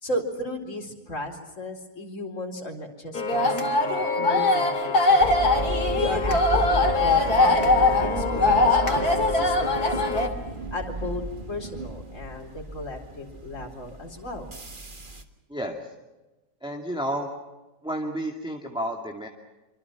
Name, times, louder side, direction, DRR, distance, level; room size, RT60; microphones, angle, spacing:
voice 1, 0.0-10.2 10.7-11.2 11.5-14.5, left 1 dB, 45° left, 2 dB, 4.6 m, -35 dB
sound 1, 3.1-10.3, left 2 dB, 60° left, 3.3 m, -21 dB
sound 2, 5.2-15.2, right 1 dB, 30° right, 1.8 m, -34 dB
voice 2, 15.5-15.8 16.6-17.3 17.8-19.3, right 1 dB, 5° right, 1 dB, 2.3 m, -31 dB
26.0 x 26.0 x 6.1 m, 1.1 s
omnidirectional pair, 1.8 m